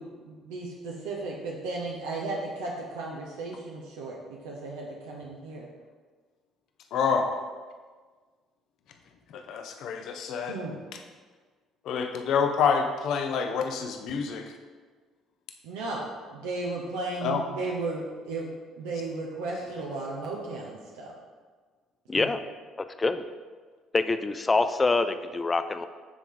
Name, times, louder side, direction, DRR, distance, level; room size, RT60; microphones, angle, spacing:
voice 1, 0.0-5.7 10.5-10.8 15.6-21.1 22.1-22.3, right 2 dB, 80° right, -2 dB, 0.7 m, -35 dB
voice 2, 6.9-7.3 9.3-10.6 11.8-14.4 17.2-17.4, left 6 dB, 65° left, 5 dB, 0.7 m, -27 dB
voice 3, 22.1-22.4 22.8-23.2 23.9-25.9, left 3 dB, 25° left, 10 dB, 0.4 m, -25 dB
8.0 x 3.4 x 3.8 m, 1.5 s
hypercardioid pair, 60°, 0 cm